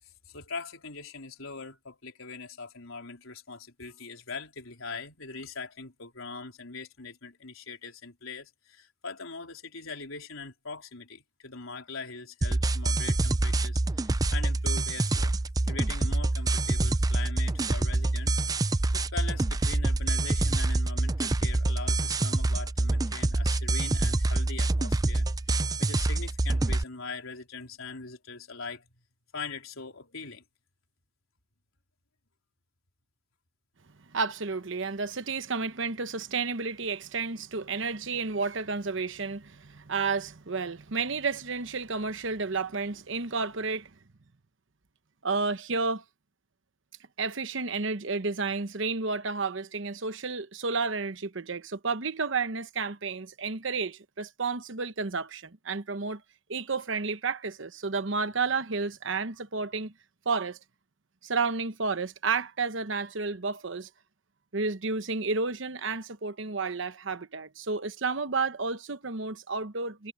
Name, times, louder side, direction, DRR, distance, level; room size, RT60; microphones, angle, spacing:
voice 1, 0.3-15.3 15.7-28.9 29.3-30.4, left 4 dB, 80° left, 4.1 m, -41 dB
sound 1, 12.4-26.8, right 2 dB, 20° right, 0.4 m, -26 dB
voice 2, 34.1-43.9 45.2-46.0 47.2-56.2 56.5-59.9 60.2-60.6 61.2-63.9 64.5-70.1, right 4 dB, 60° right, 1.0 m, -31 dB
head